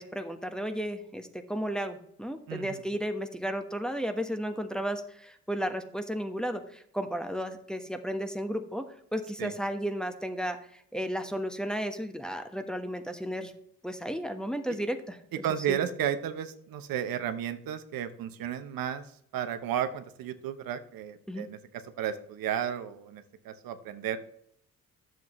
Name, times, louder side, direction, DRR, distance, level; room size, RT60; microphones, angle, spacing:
voice 1, 0.0-13.5 13.8-15.8 21.3-21.5, equal, ahead, 5 dB, 1.3 m, -34 dB
voice 2, 2.5-2.8 9.4-9.5 15.4-19.0 19.3-21.6 22.0-24.2, right 9 dB, 75° right, 9 dB, 0.9 m, -33 dB
10.5 x 7.6 x 3.2 m, 0.71 s
supercardioid pair, 55°, 35 cm